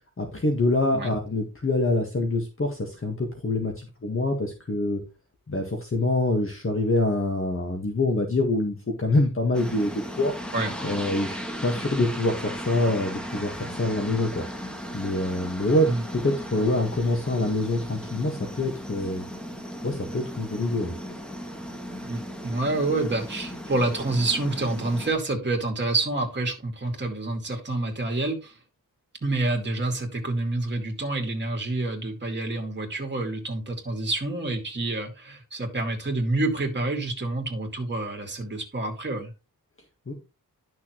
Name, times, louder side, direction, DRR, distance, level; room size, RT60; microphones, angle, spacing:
voice 1, 0.2-5.0 5.5-10.3 10.8-14.4 14.9-15.9 16.1-19.3 19.8-20.9 40.1-40.2, left 2 dB, 35° left, 2 dB, 1.8 m, -25 dB
sound 1, 9.5-25.1, equal, 5° left, 1.5 m, -37 dB
voice 2, 22.0-28.5 29.2-39.3, right 2 dB, 30° right, 1 dB, 2.4 m, -28 dB
11.5 x 6.3 x 3.2 m, 0.28 s
wide cardioid pair, 120°, 36 cm